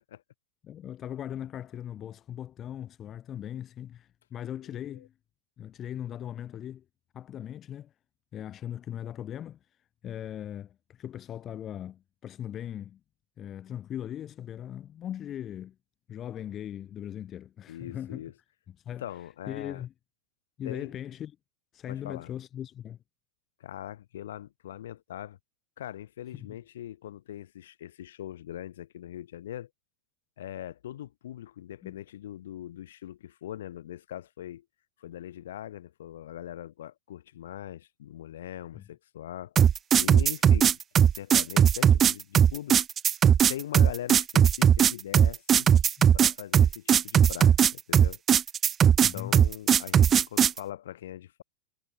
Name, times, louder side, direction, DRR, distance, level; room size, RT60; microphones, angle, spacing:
voice 1, 0.6-5.1 5.6-6.9 7.1-7.9 8.3-9.6 10.0-13.0 13.4-15.8 16.1-18.3 18.7-19.1 19.5-19.9 20.6-21.4 21.7-23.0 26.3-26.6 31.8-32.0 38.7-38.8 46.0-46.1 49.0-49.4, left 10 dB, 30° left, 2.1 m, -39 dB
voice 2, 4.7-5.1 17.7-18.3 19.0-19.8 20.6-20.9 21.9-22.3 23.6-25.4 25.8-29.7 30.4-34.7 35.0-39.6 40.0-40.8 41.2-42.8 43.5-45.7 46.1-48.2 49.1-51.4, left 12 dB, 60° left, 5.1 m, -41 dB
sound 1, 39.6-50.6, right 8 dB, 25° right, 0.3 m, -19 dB
figure-of-eight pair, 90°, 0 cm